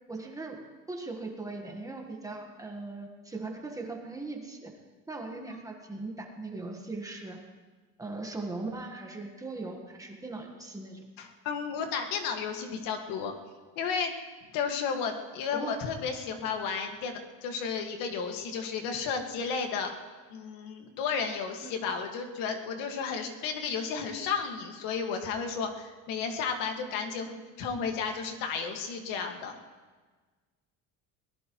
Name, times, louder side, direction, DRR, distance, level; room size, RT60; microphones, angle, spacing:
voice 1, 0.1-4.7 5.1-7.4 8.0-11.1 15.5-15.8 21.6-21.7 27.3-27.4, right 3 dB, 10° right, 2 dB, 1.3 m, -39 dB
voice 2, 11.2-13.3 13.8-14.1 14.5-19.9 20.3-29.6, left 6 dB, 75° left, 4 dB, 1.9 m, -33 dB
22.5 x 19.0 x 3.1 m, 1.4 s
cardioid pair, 170°, 34 cm